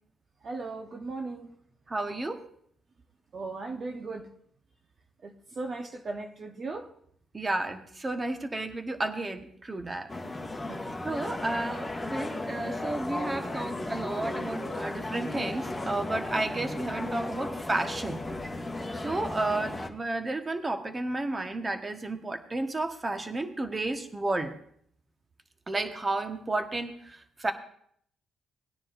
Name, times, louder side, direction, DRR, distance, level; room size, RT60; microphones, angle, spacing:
voice 1, 0.4-1.6 3.3-4.3 5.2-6.9 10.7-10.9, right 3 dB, 45° right, 1.0 m, -37 dB
voice 2, 1.9-2.4 7.3-10.1 11.0-18.2 18.9-24.5 25.7-27.5, right 2 dB, 25° right, 1.3 m, -32 dB
sound 1, 10.1-19.9, left 2 dB, 10° left, 1.5 m, -35 dB
19.0 x 9.6 x 2.6 m
cardioid pair, 90°, 0 cm